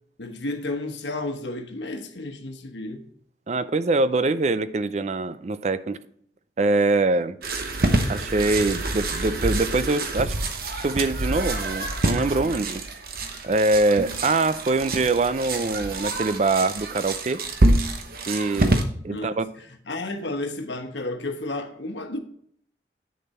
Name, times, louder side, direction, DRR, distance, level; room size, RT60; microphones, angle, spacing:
voice 1, 0.2-3.1 19.1-22.2, left 2 dB, 90° left, 1.2 m, -32 dB
voice 2, 3.5-6.0 6.6-7.4 8.1-10.3 10.8-12.8 13.4-17.4 18.3-19.5, right 3 dB, 40° right, 0.4 m, -23 dB
sound 1, 7.4-18.8, right 2 dB, 55° right, 1.0 m, -26 dB
8.7 x 6.8 x 4.2 m
head